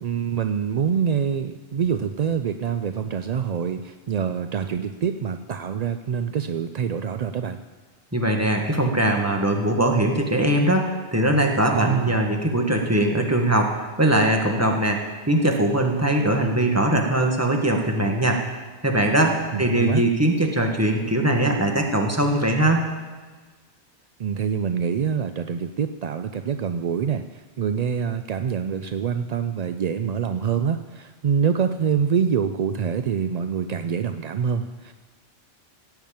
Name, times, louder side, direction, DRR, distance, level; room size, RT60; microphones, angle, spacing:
voice 1, 0.0-7.6 11.7-12.2 19.5-20.0 24.2-34.9, right 7 dB, 60° right, 8 dB, 0.4 m, -25 dB
voice 2, 8.1-22.9, right 1 dB, 15° right, 2 dB, 1.5 m, -21 dB
16.0 x 5.9 x 8.7 m, 1.4 s
omnidirectional pair, 1.2 m